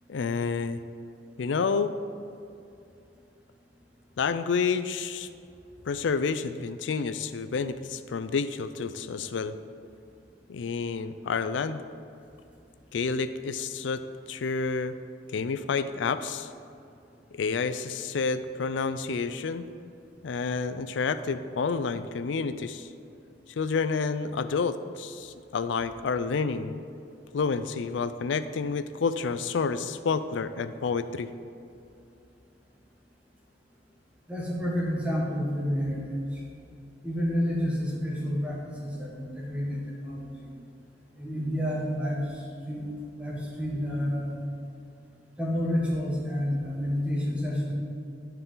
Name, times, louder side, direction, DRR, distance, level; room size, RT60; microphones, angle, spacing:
voice 1, 0.1-0.8 1.4-1.9 4.2-5.3 5.9-9.5 10.5-11.8 12.9-14.9 15.3-16.5 17.3-19.7 20.2-22.9 23.6-26.8 27.3-31.3, left 5 dB, 90° left, 12 dB, 0.4 m, -29 dB
voice 2, 34.3-36.4 37.0-40.5 41.2-42.3 42.7-42.9 43.2-44.4 45.4-47.7, equal, 5° right, -4 dB, 1.3 m, -29 dB
13.0 x 4.7 x 3.9 m, 2.6 s
head